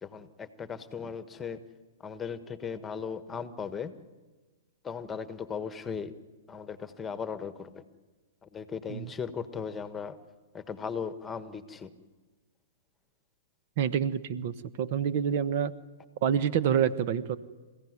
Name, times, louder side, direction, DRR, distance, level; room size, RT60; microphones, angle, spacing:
voice 1, 0.0-1.6 2.0-3.9 4.8-6.1 6.5-7.8 8.4-10.2 10.5-11.9, left 6 dB, 15° left, 11 dB, 1.5 m, -37 dB
voice 2, 13.8-15.7 16.2-17.4, right 8 dB, 50° right, 13 dB, 1.2 m, -27 dB
27.5 x 16.0 x 9.8 m, 1.3 s
hypercardioid pair, 120°, 0 cm